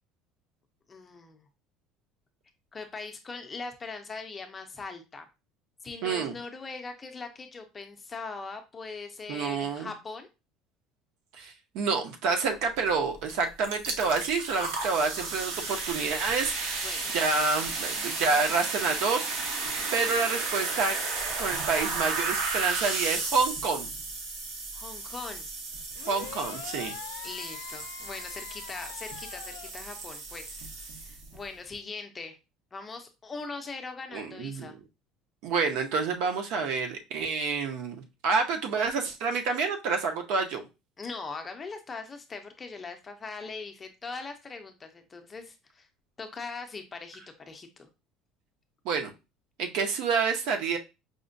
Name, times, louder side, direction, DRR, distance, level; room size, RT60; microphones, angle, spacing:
voice 1, 0.9-1.5 2.7-5.3 5.8-10.3 16.8-17.2 24.7-25.5 27.2-32.4 32.7-34.8 41.0-45.9 46.2-47.9, left 4 dB, 20° left, 6 dB, 0.5 m, -41 dB
voice 2, 6.0-6.3 9.3-9.9 11.4-16.9 17.1-19.3 19.9-21.0 21.4-23.9 26.1-26.9 34.1-34.7 35.4-38.0 38.2-40.6 48.8-49.1 49.6-50.8, right 4 dB, 65° right, 5 dB, 0.6 m, -28 dB
sound 1, 13.3-13.4 13.6-31.4, right 3 dB, 85° right, 0.9 m, -34 dB
sound 2, 26.0-29.7, left 11 dB, 90° left, 0.4 m, -43 dB
5.0 x 2.1 x 2.5 m, 0.27 s
cardioid pair, 160°, 0 cm